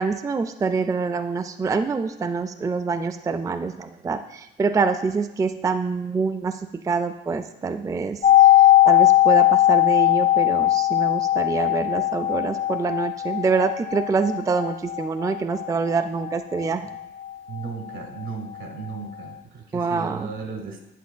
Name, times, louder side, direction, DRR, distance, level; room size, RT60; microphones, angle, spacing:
voice 1, 0.0-6.5 6.8-8.5 8.8-16.9 19.7-20.3, right 4 dB, 15° right, 8 dB, 0.3 m, -25 dB
sound 1, 8.2-18.0 18.2-18.3, left 14 dB, 45° left, 1.0 m, -19 dB
voice 2, 17.5-20.8, right 5 dB, 70° right, 4 dB, 1.3 m, -35 dB
8.1 x 7.4 x 2.2 m, 0.88 s
cardioid pair, 90°, 20 cm